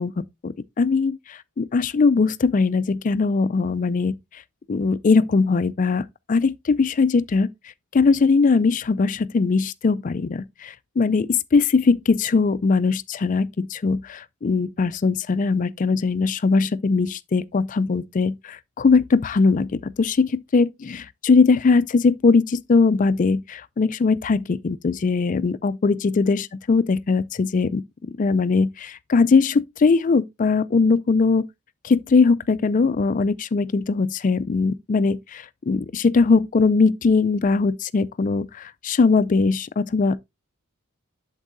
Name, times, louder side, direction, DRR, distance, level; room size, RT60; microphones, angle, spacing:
voice 1, 0.0-4.1 4.7-7.5 7.9-31.4 31.8-40.2, left 4 dB, 35° left, 0.3 m, -20 dB
8.1 x 7.2 x 2.6 m
head